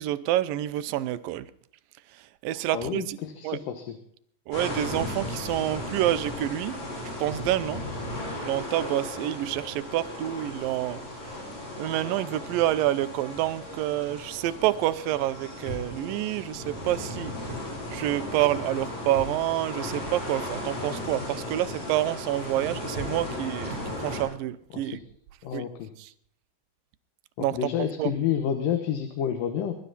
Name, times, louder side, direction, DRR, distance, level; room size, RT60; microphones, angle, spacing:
voice 1, 0.0-1.5 2.1-3.2 3.4-3.6 4.5-7.8 8.4-11.5 11.8-17.4 17.9-25.0 25.5-25.6 26.0-26.1 27.4-28.1, right 14 dB, 85° right, 2.5 m, -28 dB
voice 2, 2.7-3.8 24.8-24.9 25.4-25.9 27.5-29.7, left 9 dB, 75° left, 2.9 m, -29 dB
sound 1, 4.5-24.2, left 1 dB, 55° left, 8.2 m, -36 dB
23.0 x 11.5 x 4.1 m
omnidirectional pair, 4.0 m